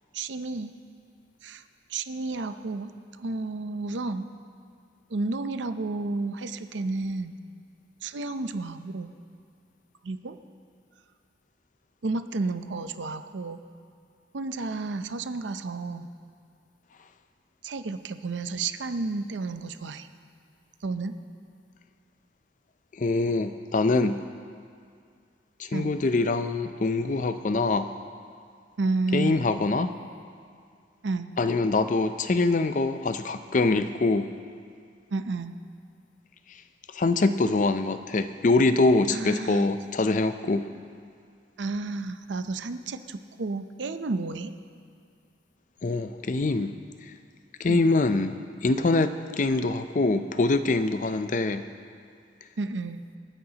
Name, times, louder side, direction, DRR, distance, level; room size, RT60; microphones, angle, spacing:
voice 1, 0.1-0.7 1.4-1.6 1.9-4.3 5.1-7.4 8.0-9.1 10.0-10.4 12.0-13.6 14.3-16.1 17.6-20.1 20.8-21.2 25.7-25.9 28.8-29.5 31.0-31.3 35.1-35.6 39.1-39.7 41.6-44.5 47.7-47.9 52.6-53.1, right 3 dB, 80° right, 9 dB, 0.6 m, -31 dB
voice 2, 23.0-24.2 25.6-27.9 29.1-29.9 31.4-34.3 36.9-40.6 45.8-46.7 47.6-48.3 48.6-51.6, left 3 dB, 45° left, 10 dB, 0.5 m, -24 dB
27.0 x 9.7 x 2.9 m, 2.2 s
head